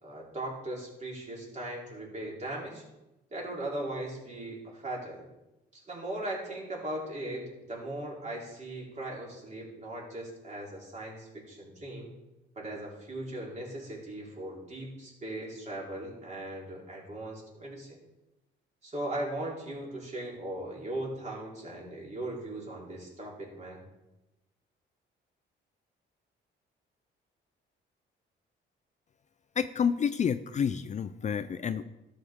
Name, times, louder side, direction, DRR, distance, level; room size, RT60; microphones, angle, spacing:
voice 1, 0.0-2.8 3.3-5.3 5.7-12.1 12.5-18.0 18.8-23.8, right 1 dB, 35° right, -3 dB, 3.3 m, -38 dB
voice 2, 29.6-31.8, left 7 dB, 35° left, 12 dB, 0.4 m, -29 dB
12.5 x 6.6 x 3.6 m, 0.97 s
cardioid pair, 90°, 20 cm